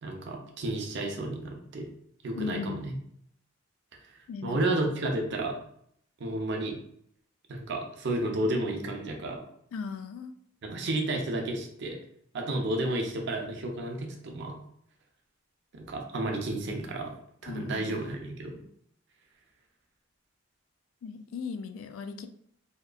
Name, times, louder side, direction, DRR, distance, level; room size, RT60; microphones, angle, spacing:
voice 1, 0.0-1.9 2.2-2.9 4.4-5.6 6.2-6.7 7.5-9.4 10.6-12.0 12.3-14.5 15.7-17.2 17.4-18.6, right 1 dB, 60° right, 2 dB, 0.5 m, -31 dB
voice 2, 2.3-3.0 4.3-4.6 9.7-10.3 17.5-18.1 21.0-22.3, left 5 dB, 85° left, 9 dB, 0.3 m, -37 dB
2.8 x 2.3 x 2.3 m, 0.68 s
head